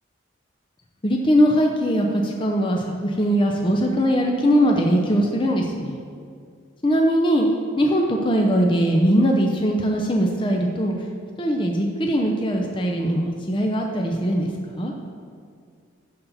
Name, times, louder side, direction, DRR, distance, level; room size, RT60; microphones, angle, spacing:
voice 1, 1.0-6.0 6.8-7.5 7.8-10.9 11.4-14.9, equal, 25° left, 0 dB, 0.6 m, -21 dB
11.5 x 4.1 x 7.0 m, 2.2 s
head